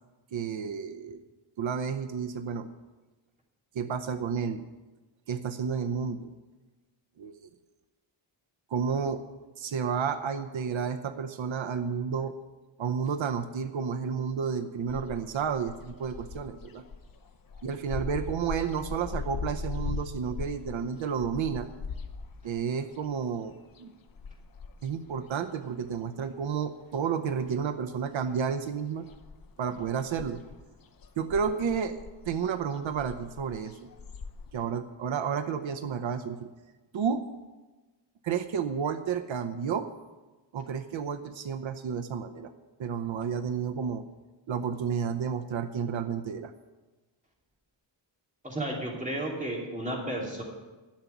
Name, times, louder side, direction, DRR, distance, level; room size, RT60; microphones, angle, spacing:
voice 1, 0.3-1.2 1.6-2.7 3.7-4.7 5.3-6.3 7.2-7.3 8.7-9.2 9.6-12.3 12.8-16.8 17.6-21.7 22.4-23.9 24.8-29.1 29.6-30.4 31.2-32.0 32.3-33.9 34.5-36.5 36.9-37.3 38.2-39.9 40.5-42.5 42.8-44.0 44.5-46.5, right 6 dB, 85° right, 8 dB, 0.8 m, -31 dB
sound 1, 14.9-26.5 26.8-28.1 28.3-34.5, left 4 dB, 50° left, 0.9 m, -40 dB
voice 2, 48.4-50.4, right 1 dB, 15° right, -2 dB, 2.8 m, -33 dB
12.0 x 7.2 x 9.1 m, 1.2 s
wide cardioid pair, 175°, 46 cm